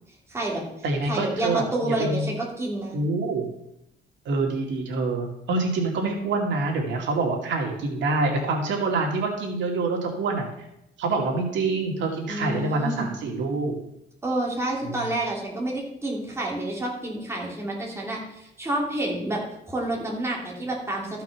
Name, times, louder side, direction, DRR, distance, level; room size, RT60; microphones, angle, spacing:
voice 1, 0.3-0.6 1.1-3.0 12.3-13.1 14.2-21.2, right 1 dB, 15° right, -3 dB, 3.0 m, -29 dB
voice 2, 0.8-2.2 2.9-3.5 4.3-10.5 11.0-13.8 14.8-15.0, right 3 dB, 75° right, 1 dB, 2.5 m, -26 dB
14.0 x 5.9 x 6.0 m, 0.82 s
cardioid pair, 150°, 19 cm